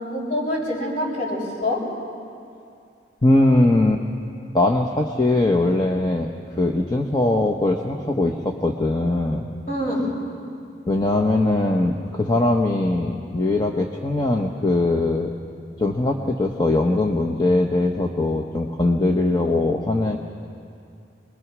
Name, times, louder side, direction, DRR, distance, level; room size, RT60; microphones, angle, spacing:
voice 1, 0.0-1.8 9.7-10.0, left 1 dB, 40° left, -4 dB, 6.5 m, -25 dB
voice 2, 3.2-4.0 4.5-6.3 6.6-9.5 10.9-15.3 15.8-20.2, left 2 dB, 25° left, 2 dB, 1.0 m, -21 dB
26.0 x 22.0 x 6.2 m, 2.5 s
head